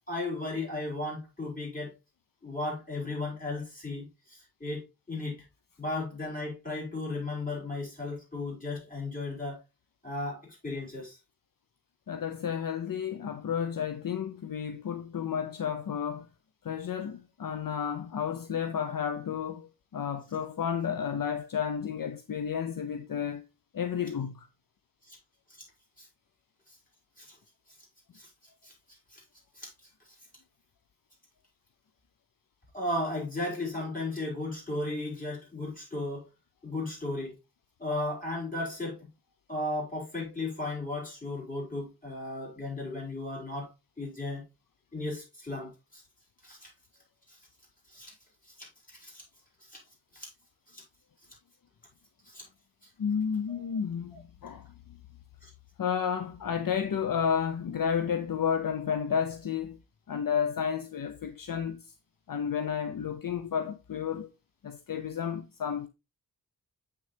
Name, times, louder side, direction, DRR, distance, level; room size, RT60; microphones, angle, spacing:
voice 1, 0.1-1.9 2.4-5.4 5.8-9.6 10.0-11.2 25.1-25.2 26.0-26.1 26.7-26.8 27.2-27.3 28.1-28.3 28.6-29.2 29.6-29.7 32.7-36.3 36.6-37.4 37.8-39.1 39.5-43.7 44.0-44.4 44.9-46.0 46.4-46.7 47.3-47.4 47.9-48.1 48.6-49.2 49.7-49.8 50.1-50.3 50.7-50.8 52.2-52.4 53.5-53.6 54.1-54.2 55.4-55.5, left 2 dB, 20° left, 5.6 m, -35 dB
voice 2, 12.1-16.3 16.6-23.4 23.7-24.5 53.0-54.7 55.8-59.8 60.1-61.9 62.3-64.3 64.6-65.9, left 7 dB, 60° left, 0.6 m, -31 dB
7.6 x 6.6 x 3.3 m
wide cardioid pair, 100°, 38 cm